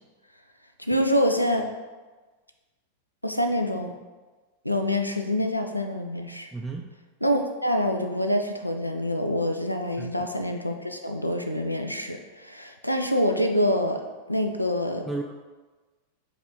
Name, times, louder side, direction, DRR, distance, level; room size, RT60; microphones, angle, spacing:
voice 1, 0.8-1.7 3.2-3.9 4.6-6.5 7.2-14.0 14.3-15.0, equal, 90° left, 5 dB, 0.3 m, -26 dB
voice 2, 6.5-6.9 10.0-10.3 15.1-15.2, right 3 dB, 5° right, 0 dB, 0.3 m, -34 dB
5.0 x 2.4 x 4.3 m, 1.3 s
figure-of-eight pair, 90°, 0 cm